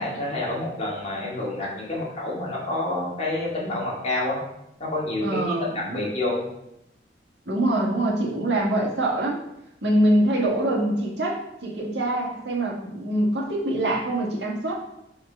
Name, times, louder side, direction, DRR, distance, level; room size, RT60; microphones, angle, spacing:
voice 1, 0.0-4.4 4.8-6.5, left 2 dB, 40° left, -5 dB, 2.2 m, -28 dB
voice 2, 5.2-6.1 7.5-9.4 9.8-14.8, right 1 dB, 80° right, -2 dB, 1.8 m, -24 dB
4.9 x 4.7 x 5.6 m, 0.81 s
head